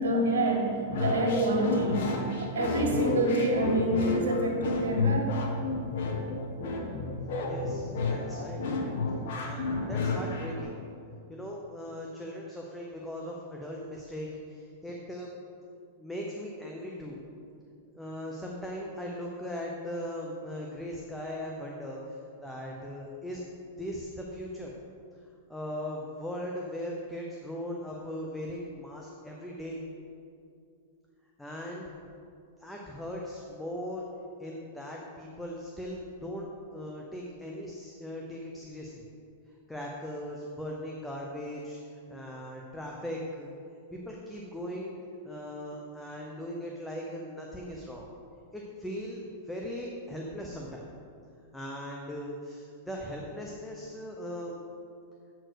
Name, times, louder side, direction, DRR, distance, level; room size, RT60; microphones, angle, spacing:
voice 1, 0.0-2.1 2.4-5.4, right 1 dB, 85° right, 0 dB, 1.7 m, -27 dB
sound 1, 0.9-10.6, left 3 dB, 65° left, 1.3 m, -31 dB
voice 2, 7.5-8.6 9.3-10.8 11.3-15.3 16.0-17.2 17.9-23.4 23.8-24.7 25.5-29.8 31.4-31.9 32.6-34.1 34.4-39.0 39.7-43.5 43.9-45.0 45.2-48.1 48.5-50.8 51.5-54.6, equal, 5° left, -2 dB, 0.8 m, -39 dB
7.7 x 4.6 x 6.3 m, 2.5 s
hypercardioid pair, 125°, 0 cm